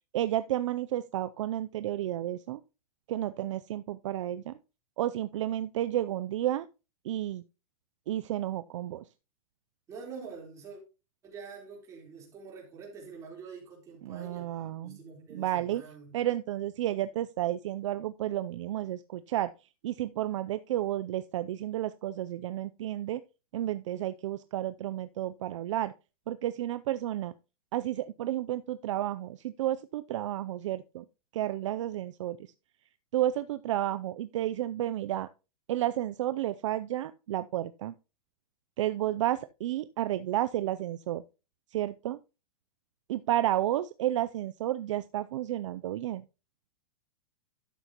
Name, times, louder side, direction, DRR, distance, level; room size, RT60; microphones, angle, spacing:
voice 1, 0.1-2.6 3.1-4.5 5.0-6.7 7.0-7.4 8.1-9.0 14.1-15.0 15.3-15.8 16.1-19.5 19.8-23.2 23.5-25.9 26.3-27.3 27.7-31.0 31.3-32.4 33.1-35.3 35.7-37.9 38.8-41.2 41.7-42.2 43.1-46.2, right 13 dB, 55° right, 0.5 m, -31 dB
voice 2, 9.9-10.8 11.2-16.1, right 5 dB, 15° right, 3.9 m, -46 dB
12.0 x 8.1 x 2.9 m
supercardioid pair, 165°, 18 cm